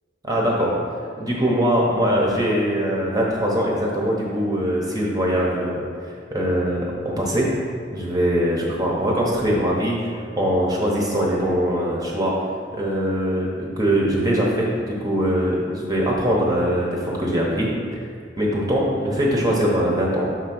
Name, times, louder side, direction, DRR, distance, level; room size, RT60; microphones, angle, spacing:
voice 1, 0.2-0.7 1.2-5.8 6.3-6.8 7.2-7.5 7.9-10.0 10.3-12.3 12.8-18.0 18.4-20.3, equal, 20° right, -3 dB, 0.8 m, -22 dB
6.2 x 3.7 x 6.0 m, 2.3 s
head